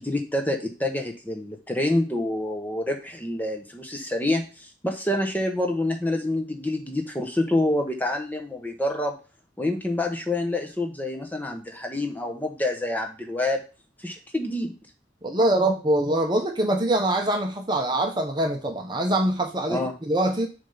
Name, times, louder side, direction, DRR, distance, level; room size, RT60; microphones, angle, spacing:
voice 1, 0.0-9.2 9.6-13.6 14.0-14.8 19.7-19.9, left 1 dB, 10° left, 3 dB, 1.0 m, -27 dB
voice 2, 15.2-20.5, right 1 dB, 25° right, 3 dB, 0.8 m, -24 dB
7.1 x 3.5 x 5.6 m, 0.33 s
head